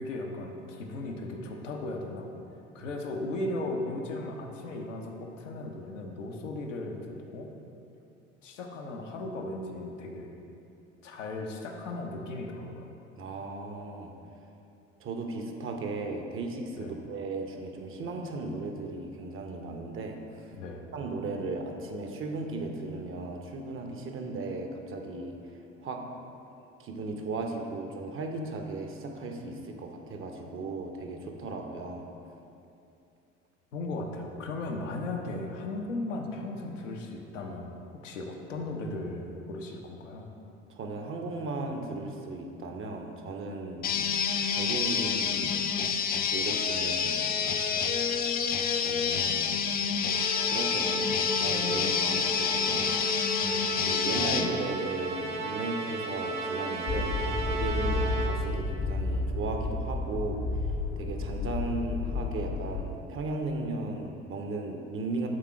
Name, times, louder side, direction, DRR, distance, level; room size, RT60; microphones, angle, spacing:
voice 1, 0.0-2.3 2.7-7.5 8.4-10.4 11.0-12.9 16.7-17.0 20.5-20.9 31.5-31.6 33.7-37.8 38.0-40.3 47.7-47.9 53.4-53.7, left 2 dB, 80° left, 1 dB, 0.8 m, -37 dB
voice 2, 13.2-14.1 15.0-20.5 20.9-25.4 25.8-26.0 26.8-32.1 40.7-44.0 44.5-45.6 46.3-47.2 48.8-49.5 50.5-51.1 51.4-53.3 53.8-60.4 61.0-65.3, right 3 dB, 35° right, 3 dB, 0.8 m, -36 dB
sound 1, 43.8-54.5, left 7 dB, 25° left, 0.4 m, -28 dB
Musical instrument, 50.1-58.6, right 2 dB, 70° right, 0.9 m, -34 dB
sound 2, 56.9-62.9, left 3 dB, 40° left, 0.8 m, -31 dB
7.7 x 3.6 x 4.7 m, 2.7 s
figure-of-eight pair, 60°, 37 cm